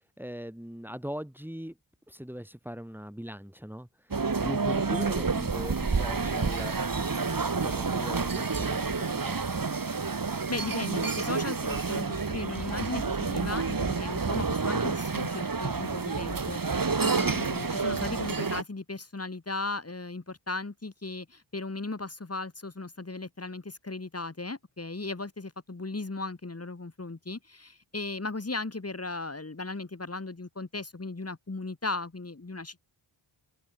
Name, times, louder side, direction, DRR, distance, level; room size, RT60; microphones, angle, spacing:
voice 1, 0.2-1.7 2.1-3.9 4.4-9.6, equal, 5° right, 4.5 m, -40 dB
sound 1, 4.1-18.6, right 4 dB, 40° right, 3.9 m, -29 dB
voice 2, 10.5-16.6 17.0-32.9, left 3 dB, 30° left, 5.9 m, -36 dB
wide cardioid pair, 95°, 50 cm